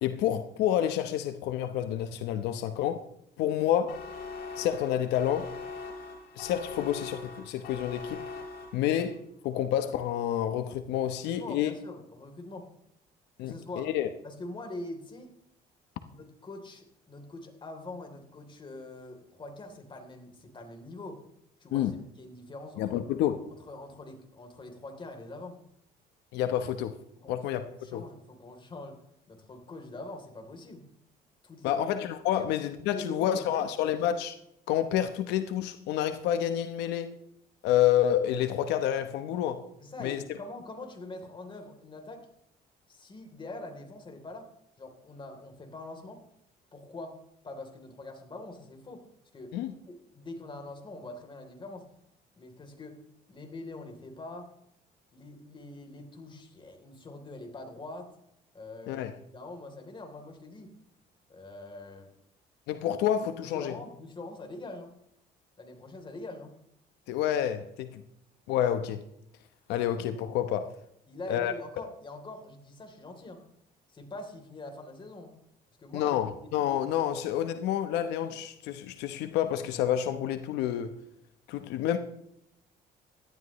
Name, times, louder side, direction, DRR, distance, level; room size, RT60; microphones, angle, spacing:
voice 1, 0.0-3.0 3.4-4.0 4.6-5.5 6.4-8.2 8.7-9.2 9.4-11.7 13.4-14.1 21.7-22.0 22.8-23.4 26.3-26.9 27.3-28.0 31.6-34.4 34.7-37.1 37.6-39.6 40.0-40.2 49.5-49.7 58.9-59.1 62.7-63.8 67.1-68.0 68.5-69.0 69.7-70.7 71.3-71.5 75.9-81.0 81.5-82.0, left 10 dB, 90° left, 1.0 m, -29 dB
sound 1, 3.9-9.1, left 4 dB, 65° left, 3.6 m, -41 dB
voice 2, 11.2-12.7 13.4-13.9 14.2-15.3 16.1-21.2 21.6-23.0 23.7-25.5 27.2-29.0 29.3-30.9 31.4-31.9 32.3-32.5 32.9-33.7 39.8-42.3 42.9-44.5 44.8-46.2 46.7-47.2 47.4-49.0 49.3-49.6 49.9-51.9 52.4-53.0 53.3-54.5 55.1-58.1 58.5-60.7 61.3-62.1 63.4-64.9 65.6-66.5 71.1-73.4 73.9-75.3 75.8-76.5, left 2 dB, 30° left, 3.4 m, -44 dB
17.5 x 12.5 x 3.1 m
cardioid pair, 110°, 17 cm